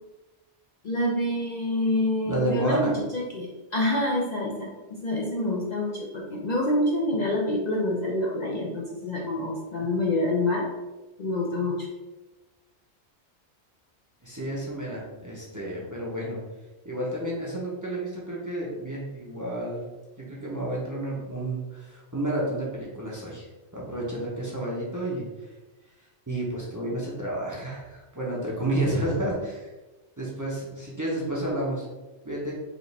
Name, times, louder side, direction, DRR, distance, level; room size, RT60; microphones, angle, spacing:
voice 1, 0.8-10.7 11.2-11.9, left 1 dB, 50° left, -3 dB, 0.6 m, -27 dB
voice 2, 2.3-3.0 14.2-16.4 16.8-19.8 20.2-25.3 26.3-29.7 30.2-31.9 32.2-32.5, right 1 dB, 20° right, -5 dB, 0.7 m, -30 dB
5.0 x 2.5 x 3.2 m, 1.1 s
omnidirectional pair, 1.1 m